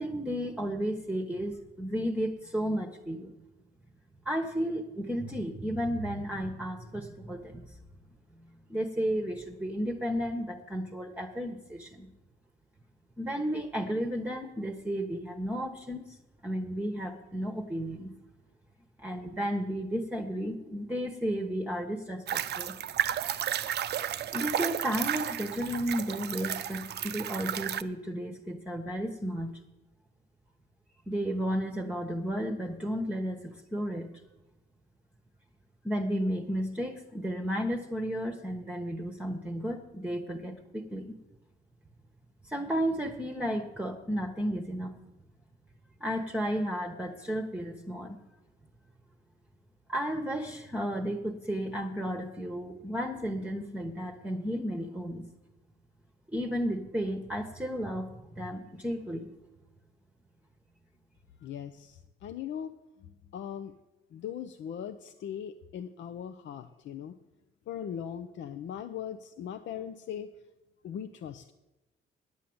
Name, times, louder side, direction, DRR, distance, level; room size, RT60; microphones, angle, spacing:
voice 1, 0.0-3.3 4.2-7.8 8.4-12.1 13.2-16.2 16.4-18.1 19.0-22.8 24.3-29.5 31.1-34.1 35.8-41.1 42.4-44.9 46.0-48.2 49.9-55.3 56.3-59.3, equal, 5° right, 2 dB, 1.1 m, -33 dB
sound 1, 22.3-27.8, right 10 dB, 55° right, 0.6 m, -33 dB
voice 2, 61.4-63.7 64.1-67.2 67.7-70.3 70.8-71.5, left 9 dB, 65° left, 9 dB, 0.6 m, -40 dB
9.8 x 8.4 x 7.8 m, 1.0 s
cardioid pair, 90°, 20 cm